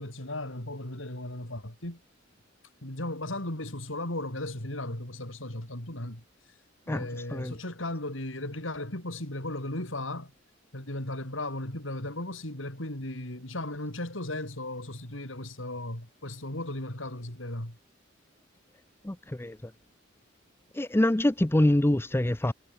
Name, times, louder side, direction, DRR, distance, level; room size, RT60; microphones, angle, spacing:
voice 1, 0.0-2.0 2.8-6.2 6.9-10.3 10.7-17.8, left 1 dB, 75° left, 5.2 m, -36 dB
voice 2, 6.9-7.6 19.0-19.7 20.7-22.5, left 1 dB, 10° left, 0.6 m, -25 dB
head